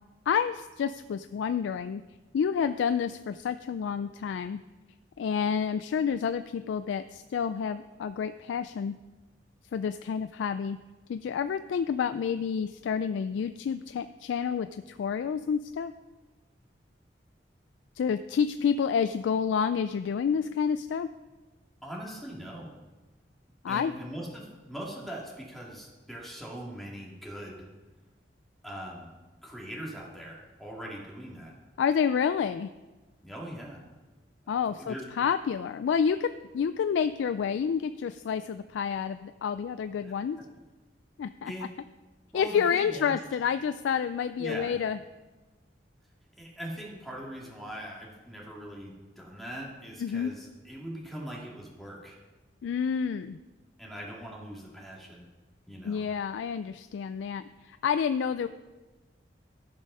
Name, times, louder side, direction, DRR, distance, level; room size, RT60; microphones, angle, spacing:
voice 1, 0.3-2.0 2.3-4.6 5.2-9.0 9.7-10.8 11.1-15.9 18.0-21.1 23.6-23.9 31.8-32.7 34.5-40.4 41.2-41.5 42.3-45.0 50.0-50.3 52.6-53.4 55.8-58.5, left 7 dB, 85° left, 11 dB, 0.3 m, -29 dB
voice 2, 21.8-22.7 23.7-27.7 28.6-29.1 29.4-31.5 33.2-33.8 34.4-35.0 40.0-40.1 41.5-41.7 42.3-43.2 44.4-44.8 46.4-52.2 53.8-55.3 55.7-56.0, right 1 dB, ahead, -3 dB, 2.0 m, -41 dB
14.0 x 5.3 x 5.5 m, 1.2 s
head